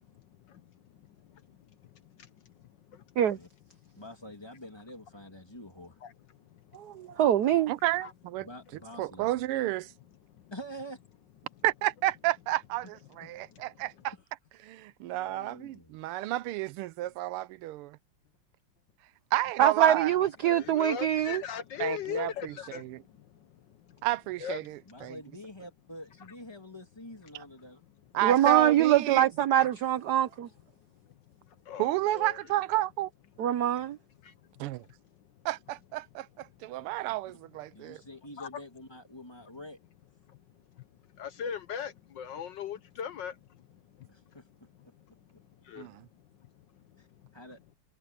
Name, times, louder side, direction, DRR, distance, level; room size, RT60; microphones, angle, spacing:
voice 1, 0.1-3.2 3.8-4.0 6.0-7.2 8.0-8.1 10.3-10.5 20.4-24.1 24.4-24.6 25.0-25.1 30.9-32.4 34.2-34.3 36.8-36.9 37.7-38.1 38.4-38.6 40.3-40.9 41.1-44.4 44.9-47.3, left 7 dB, 65° left, 1.4 m, -42 dB
voice 2, 3.9-5.9 8.4-9.3 10.5-11.0 13.2-13.3 15.0-15.9 24.9-27.8 37.1-37.2 37.7-39.8 44.1-44.4 44.8-44.9 47.0-47.1 47.3-47.6, equal, 10° left, 2.7 m, -46 dB
voice 3, 6.7-7.7 19.6-21.4 28.2-30.5 33.4-34.0, right 11 dB, 65° right, 1.0 m, -24 dB
voice 4, 7.7-8.5 9.0-9.9 11.6-14.1 14.6-18.0 19.3-20.1 21.8-23.0 24.0-25.2 28.1-29.2 31.8-33.1 34.6-34.8 35.4-38.0 45.8-46.1, right 16 dB, 90° right, 1.5 m, -31 dB
omnidirectional pair, 2.4 m